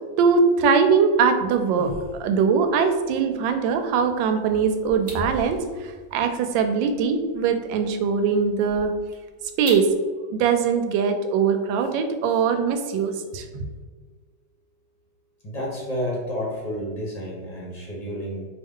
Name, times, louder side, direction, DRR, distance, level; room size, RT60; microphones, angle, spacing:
voice 1, 0.2-1.9 2.2-8.9 9.6-9.9 10.3-13.7, right 5 dB, 90° right, 6 dB, 1.3 m, -21 dB
sound 1, 1.1-9.9, equal, 25° right, 0.8 m, -42 dB
voice 2, 15.4-18.5, equal, 30° left, -4 dB, 0.9 m, -30 dB
4.6 x 2.8 x 3.6 m, 1.4 s
omnidirectional pair, 2.0 m